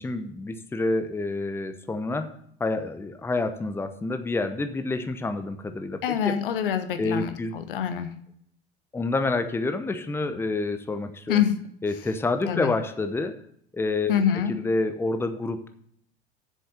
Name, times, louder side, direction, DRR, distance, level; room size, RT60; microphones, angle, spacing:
voice 1, 0.0-2.3 2.6-6.4 7.0-7.6 8.9-11.4 11.8-13.4 13.7-15.7, left 3 dB, 10° left, 9 dB, 0.8 m, -28 dB
voice 2, 6.0-8.1 11.3-11.5 12.5-12.7 14.1-14.5, left 9 dB, 65° left, 10 dB, 0.9 m, -25 dB
7.6 x 6.8 x 7.2 m, 0.68 s
figure-of-eight pair, 70°, 29 cm